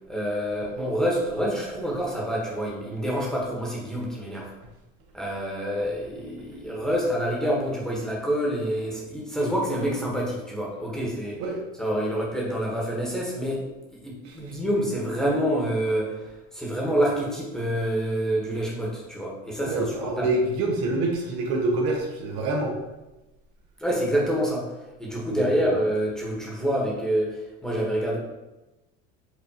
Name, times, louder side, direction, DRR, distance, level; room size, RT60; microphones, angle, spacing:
voice 1, 0.1-4.5 5.1-11.4 11.8-13.6 14.0-20.3 23.8-24.7 25.0-28.2, equal, ahead, -4 dB, 1.1 m, -27 dB
voice 2, 14.2-14.6 19.6-22.7 25.3-25.7, right 2 dB, 75° right, 1 dB, 0.9 m, -26 dB
4.6 x 2.4 x 2.8 m, 1.0 s
supercardioid pair, 90°, 31 cm